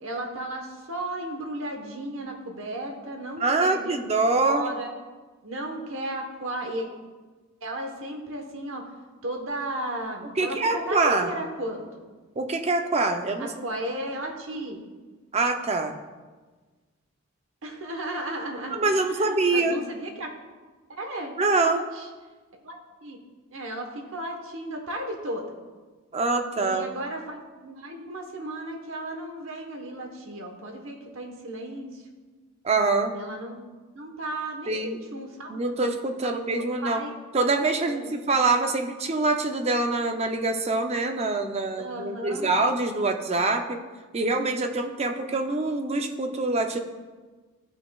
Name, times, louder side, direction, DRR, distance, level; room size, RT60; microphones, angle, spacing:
voice 1, 0.0-4.0 4.3-4.9 5.4-6.9 7.6-8.9 9.2-11.9 13.4-14.8 17.6-20.3 20.9-21.4 21.6-22.1 22.6-23.2 23.5-25.5 26.6-32.0 33.1-33.6 33.9-35.6 36.8-37.1 37.9-38.1 41.8-42.5, right 1 dB, 70° right, 3 dB, 1.1 m, -34 dB
voice 2, 3.4-4.7 10.4-11.3 12.4-13.5 15.3-15.9 18.7-19.8 21.4-21.9 26.1-26.9 32.6-33.1 34.7-35.0 35.5-37.0 37.3-38.0 38.3-43.8 44.1-46.8, right 3 dB, 30° right, 5 dB, 0.5 m, -25 dB
13.0 x 6.1 x 2.3 m, 1.3 s
head